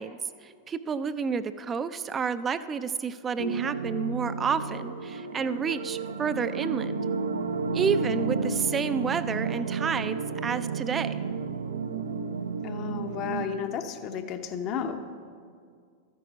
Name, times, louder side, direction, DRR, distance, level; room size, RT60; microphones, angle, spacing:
voice 1, 0.0-7.0 7.7-11.2, right 6 dB, 25° right, 12 dB, 0.5 m, -30 dB
sound 1, 3.4-13.5, right 4 dB, 80° right, 0.7 m, -32 dB
voice 2, 12.6-15.0, left 7 dB, 40° left, 8 dB, 0.9 m, -33 dB
13.0 x 9.5 x 5.1 m, 2.2 s
figure-of-eight pair, 95°, 0 cm